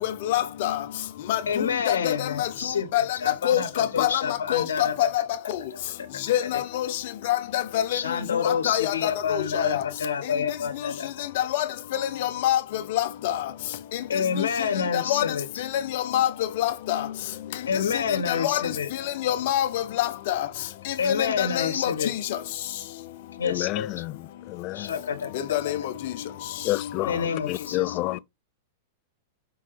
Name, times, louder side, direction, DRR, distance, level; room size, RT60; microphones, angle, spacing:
voice 1, 0.3-0.7 1.3-1.4 2.4-2.5 2.9-3.0 3.5-4.1 4.5-4.6 6.3-6.4 8.7-8.9 9.3-9.7 11.5-11.6 12.4-12.6 12.9-13.0 15.1-15.2 16.1-16.3 16.6-17.0 18.4-18.6 19.3-19.7 20.0-20.3 21.4-21.5 21.8-21.9 25.5-25.8, left 12 dB, 60° left, 1.2 m, -23 dB
voice 2, 1.5-5.2 5.7-6.6 7.9-11.3 14.1-15.5 17.7-18.9 21.0-22.1 23.4-24.0 24.7-25.7 27.0-28.0, left 6 dB, 85° left, 1.3 m, -28 dB
voice 3, 23.4-24.9 26.6-28.2, left 18 dB, 45° left, 0.4 m, -30 dB
5.6 x 3.8 x 4.8 m
hypercardioid pair, 115°, 0 cm